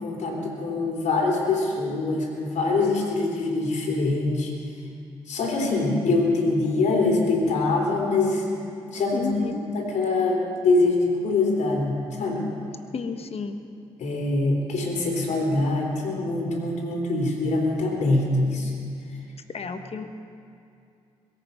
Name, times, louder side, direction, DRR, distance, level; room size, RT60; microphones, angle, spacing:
voice 1, 0.0-4.5 5.3-8.4 8.9-9.4 9.7-12.4 14.0-18.7, left 2 dB, 65° left, 0 dB, 3.4 m, -24 dB
voice 2, 9.1-9.7 12.9-13.6 19.5-20.1, left 4 dB, 50° left, 8 dB, 1.3 m, -32 dB
21.5 x 8.6 x 5.7 m, 2.5 s
hypercardioid pair, 45°, 13 cm